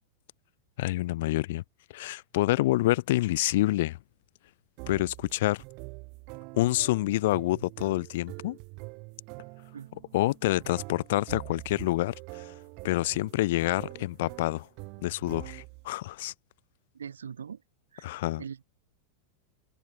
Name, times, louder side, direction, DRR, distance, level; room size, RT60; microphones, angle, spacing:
voice 1, 0.8-1.6 1.9-4.0 4.9-5.6 6.5-8.6 10.1-12.6 12.8-14.7 15.0-16.3 18.0-18.4, left 17 dB, 55° left, 0.4 m, -27 dB
sound 1, 4.8-15.9, right 32 dB, 45° right, 6.8 m, -45 dB
voice 2, 16.9-17.6 17.9-18.6, right 7 dB, 70° right, 2.4 m, -42 dB
open air
figure-of-eight pair, 90°, 0 cm